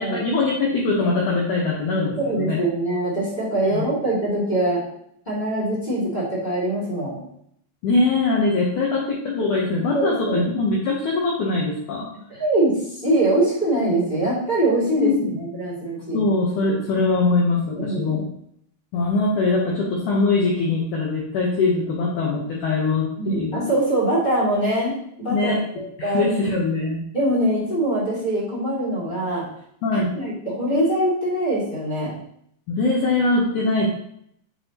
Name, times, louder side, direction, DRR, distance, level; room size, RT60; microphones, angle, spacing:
voice 1, 0.0-2.6 3.7-3.9 7.8-12.1 15.0-15.4 16.1-18.2 18.9-23.6 25.3-25.6 26.0-27.0 29.8-30.1 32.7-33.9, left 3 dB, 85° left, -3 dB, 1.7 m, -22 dB
voice 2, 2.1-4.8 5.2-7.2 9.9-10.4 12.3-15.1 15.4-16.2 17.7-18.2 23.2-25.5 26.0-26.2 27.1-29.5 29.9-32.1, right 1 dB, 20° left, -7 dB, 1.3 m, -23 dB
8.6 x 5.4 x 2.9 m, 0.71 s
omnidirectional pair, 5.1 m